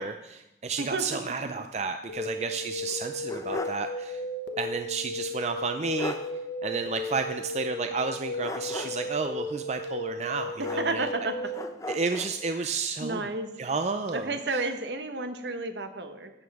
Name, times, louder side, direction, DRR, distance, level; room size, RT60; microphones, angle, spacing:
voice 1, 0.0-4.2 4.6-6.1 6.6-11.1 11.9-13.3 13.6-14.6, right 4 dB, 35° right, 7 dB, 0.4 m, -32 dB
voice 2, 0.8-1.2 10.6-11.5 13.0-13.5 14.1-16.3, right 2 dB, 70° right, 7 dB, 1.1 m, -31 dB
sound 1, 2.1-11.6, left 1 dB, 70° left, 1.2 m, -35 dB
sound 2, 2.9-3.9 4.2-4.3 5.6-5.7 6.0-6.3 8.4-9.1 10.6-11.2 11.5-12.3, left 2 dB, 15° left, 0.7 m, -37 dB
13.0 x 9.0 x 4.8 m, 0.93 s
head